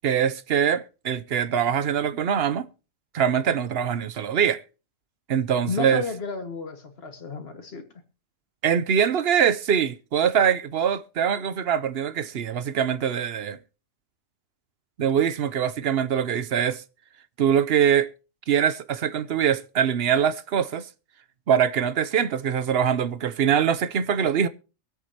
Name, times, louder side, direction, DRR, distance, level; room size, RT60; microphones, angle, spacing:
voice 1, 0.0-2.7 3.1-4.6 5.3-6.0 8.6-13.6 15.0-16.8 17.4-18.1 18.5-20.9 21.5-24.5, right 8 dB, 55° right, 0.9 m, -23 dB
voice 2, 5.7-7.9, left 4 dB, 50° left, 2.0 m, -32 dB
23.5 x 8.2 x 2.8 m
omnidirectional pair, 1.3 m